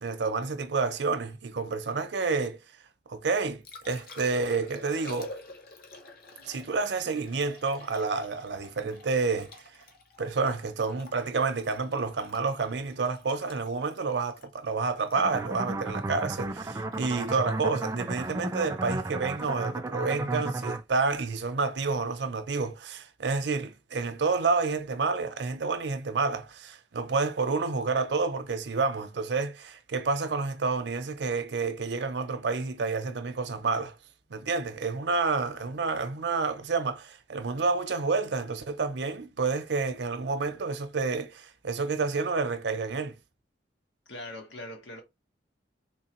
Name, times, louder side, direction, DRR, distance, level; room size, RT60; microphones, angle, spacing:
voice 1, 0.0-2.6 3.1-5.3 6.5-9.5 10.2-33.9 34.3-43.2, right 4 dB, 70° right, 0.6 m, -29 dB
Liquid, 3.2-19.3 22.1-22.3, left 1 dB, 55° left, 0.9 m, -49 dB
sound 1, 15.2-20.8, right 2 dB, 15° right, 0.3 m, -33 dB
voice 2, 44.1-45.0, left 1 dB, 90° left, 1.2 m, -41 dB
3.8 x 3.0 x 2.9 m
head